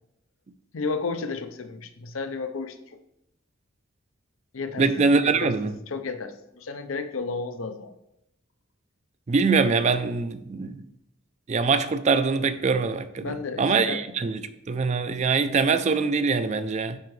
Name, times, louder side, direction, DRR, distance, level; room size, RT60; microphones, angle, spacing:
voice 1, 0.7-3.0 4.5-5.5 5.9-7.9 13.2-14.0, left 4 dB, 85° left, 0.7 m, -33 dB
voice 2, 4.8-5.7 9.3-10.8 11.5-14.4 14.7-17.0, right 4 dB, 35° right, 0.4 m, -23 dB
9.9 x 4.7 x 3.2 m
head